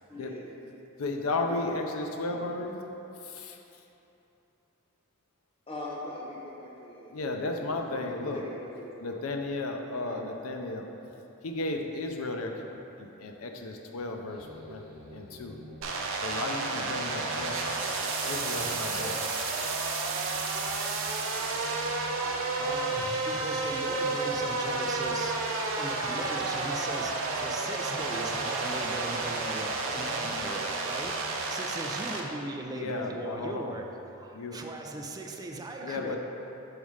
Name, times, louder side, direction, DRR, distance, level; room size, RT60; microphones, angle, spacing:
voice 1, 0.1-0.5 1.5-1.7 5.7-9.1 9.9-10.5, left 1 dB, 25° left, -4 dB, 0.6 m, -42 dB
voice 2, 1.0-2.8 3.1-3.8 7.1-8.4 9.0-10.9 11.4-12.5 13.0-15.6 16.2-19.2 32.7-33.8 34.3-34.6 35.8-36.2, left 2 dB, 75° left, 3 dB, 0.5 m, -34 dB
sound 1, 14.3-31.5, equal, 50° right, 0.9 m, -48 dB
sound 2, 15.8-32.2, right 3 dB, 65° right, 0.6 m, -31 dB
voice 3, 22.1-25.3 25.8-33.9 34.2-36.2, right 2 dB, 20° right, 2 dB, 0.3 m, -39 dB
4.9 x 4.1 x 4.9 m, 3.0 s
head